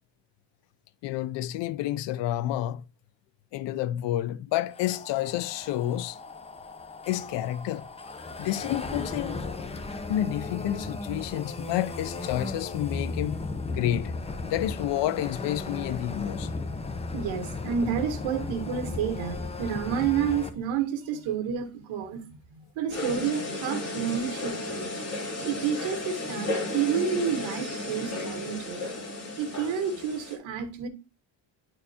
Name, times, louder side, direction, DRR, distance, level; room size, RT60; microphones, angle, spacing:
voice 1, 1.0-2.8 3.5-6.2 7.1-7.9 8.4-9.4 10.1-13.4 13.7-14.1 14.4-16.5, left 13 dB, 60° left, 0.5 m, -29 dB
sound 1, 4.7-20.5, left 3 dB, 15° left, 0.7 m, -36 dB
voice 2, 17.1-24.9 25.4-28.8 29.4-30.9, right 7 dB, 65° right, 1.8 m, -30 dB
sound 2, 22.9-30.3, left 2 dB, 30° left, 3.3 m, -34 dB
10.5 x 4.5 x 2.8 m
cardioid pair, 125°, 49 cm